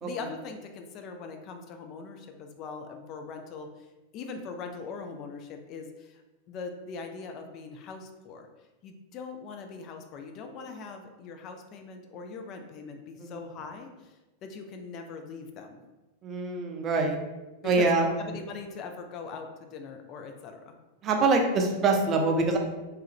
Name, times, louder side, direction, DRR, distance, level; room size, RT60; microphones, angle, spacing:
voice 1, 0.0-6.2 6.5-8.5 8.8-15.8 17.6-20.7, left 4 dB, 35° left, 4 dB, 0.3 m, -41 dB
voice 2, 16.2-17.2 17.6-18.0 21.0-22.6, right 3 dB, 30° right, 3 dB, 0.4 m, -24 dB
3.2 x 2.3 x 2.8 m, 1.1 s
figure-of-eight pair, 90°, 0 cm